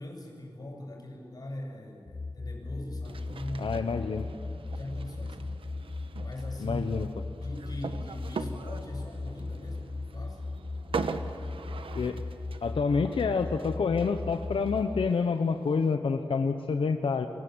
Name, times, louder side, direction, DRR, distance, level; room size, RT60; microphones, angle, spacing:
voice 1, 0.0-3.8 4.6-5.6 6.2-6.8 7.4-10.4, left 1 dB, 45° left, 1 dB, 6.8 m, -41 dB
sound 1, 2.1-15.1, left 3 dB, 30° left, 0.6 m, -37 dB
sound 2, 3.0-15.9, right 4 dB, 85° right, 1.2 m, -42 dB
voice 2, 3.6-4.3 6.6-7.1 11.9-12.2 12.6-17.3, left 5 dB, 90° left, 7 dB, 1.0 m, -28 dB
28.0 x 23.5 x 8.0 m, 2.7 s
wide cardioid pair, 100°, 9 cm